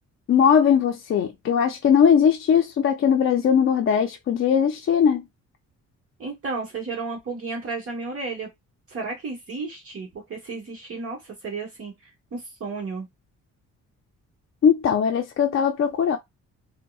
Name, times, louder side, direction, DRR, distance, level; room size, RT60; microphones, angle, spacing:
voice 1, 0.3-5.2 14.6-16.2, left 7 dB, 45° left, 0.5 m, -19 dB
voice 2, 6.2-8.5 8.9-13.1, right 4 dB, 50° right, 1.2 m, -33 dB
3.5 x 2.1 x 2.3 m
cardioid pair, 90°, 30 cm